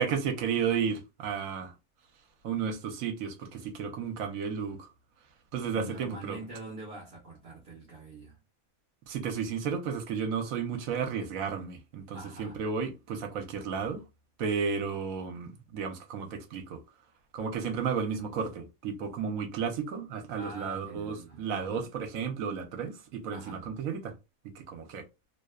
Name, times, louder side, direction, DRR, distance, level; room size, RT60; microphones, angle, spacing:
voice 1, 0.0-1.7 2.4-4.9 5.5-6.4 9.1-14.0 14.4-16.8 17.3-24.1 24.4-25.1, right 6 dB, 75° right, 1.0 m, -33 dB
voice 2, 5.7-8.4 12.1-12.6 20.4-21.9 23.3-23.7, right 1 dB, 55° right, 0.7 m, -45 dB
2.7 x 2.0 x 2.2 m
omnidirectional pair, 1.5 m